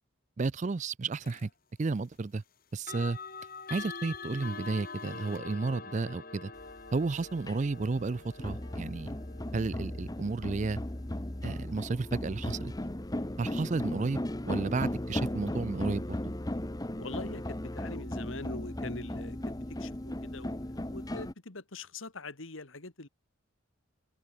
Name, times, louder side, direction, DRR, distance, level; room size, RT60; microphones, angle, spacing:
voice 1, 0.4-1.5 1.8-2.4 2.7-3.2 3.7-6.5 6.9-9.2 9.5-10.8 11.4-12.7 13.4-14.2 14.4-16.1, right 3 dB, 35° right, 0.4 m, -32 dB
sound 1, 1.2-1.5 2.8-13.6, left 4 dB, 45° left, 2.5 m, -46 dB
sound 2, 6.6-21.3, left 1 dB, 20° left, 0.9 m, -36 dB
voice 2, 17.0-23.1, left 3 dB, 70° left, 2.0 m, -43 dB
open air
head